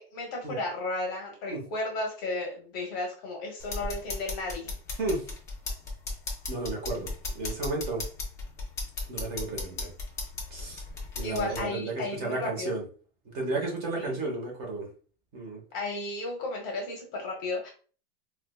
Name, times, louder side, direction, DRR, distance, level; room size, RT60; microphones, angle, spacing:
voice 1, 0.0-4.7 11.2-12.7 14.0-14.2 15.7-17.7, left 2 dB, 30° left, 1 dB, 0.7 m, -34 dB
sound 1, 3.6-11.6, left 3 dB, 10° left, 0.4 m, -36 dB
voice 2, 5.0-5.3 6.5-8.0 9.1-9.9 10.5-10.8 11.2-12.8 13.2-14.9 15.3-15.6, right 2 dB, 30° right, -1 dB, 0.9 m, -33 dB
4.3 x 2.2 x 2.2 m, 0.39 s
supercardioid pair, 170°, 31 cm